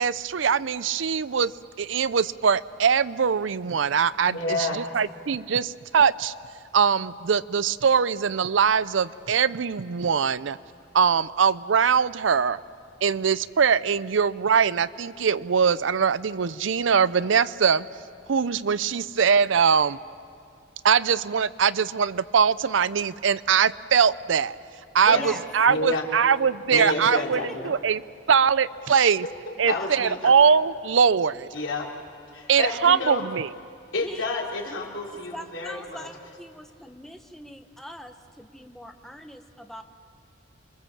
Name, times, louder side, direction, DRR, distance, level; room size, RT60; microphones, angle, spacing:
voice 1, 0.0-1.5 1.8-6.3 6.7-10.6 10.9-12.6 13.0-17.9 18.3-20.0 20.8-24.6 24.9-27.4 27.6-28.0 28.3-29.3 29.6-31.5 32.5-33.5, right 6 dB, 75° right, 17 dB, 0.5 m, -22 dB
voice 2, 4.3-4.8 25.0-25.3 25.7-26.1 26.7-27.7 29.0-30.3 31.5-31.9 32.3-33.2 33.9-36.1, left 2 dB, 85° left, -2 dB, 3.7 m, -30 dB
voice 3, 26.7-27.7 29.5-30.0 34.0-34.2 34.7-34.9 35.3-39.8, equal, ahead, 5 dB, 1.0 m, -42 dB
28.0 x 23.0 x 7.3 m, 2.4 s
head